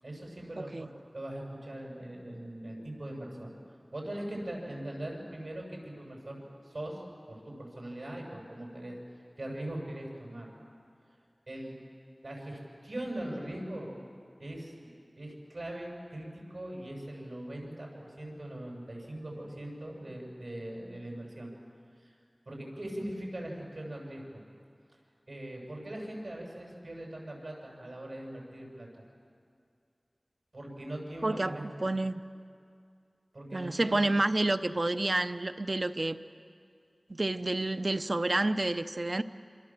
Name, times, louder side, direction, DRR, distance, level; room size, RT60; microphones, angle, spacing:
voice 1, 0.0-3.5 3.9-7.0 7.3-9.0 9.4-10.5 11.5-11.8 12.2-13.9 14.4-21.5 22.0-22.2 22.5-24.4 25.3-29.0 30.5-31.7 33.3-34.1, right 1 dB, 80° right, -1 dB, 7.6 m, -41 dB
voice 2, 0.6-0.9 31.2-32.1 33.5-36.2 37.1-39.2, right 2 dB, 55° right, 11 dB, 0.8 m, -29 dB
27.0 x 26.0 x 7.7 m, 2.3 s
wide cardioid pair, 55°, 0 cm